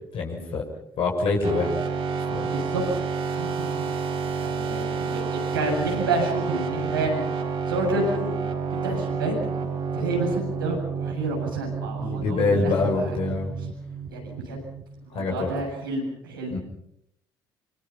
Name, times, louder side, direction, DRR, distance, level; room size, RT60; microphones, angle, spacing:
voice 1, 0.1-0.6 1.0-1.7 2.3-2.5 12.0-13.5 15.1-15.5 16.5-16.6, left 3 dB, 55° left, -1 dB, 6.1 m, -25 dB
sound 1, 1.4-15.0, right 5 dB, 60° right, 5.2 m, -30 dB
voice 2, 2.5-2.8 3.3-3.9 4.4-8.4 8.7-9.3 9.9-13.2 14.1-14.6 15.1-16.6, right 2 dB, 85° right, -1 dB, 7.6 m, -29 dB
26.0 x 25.5 x 5.8 m, 0.72 s
figure-of-eight pair, 50°, 11 cm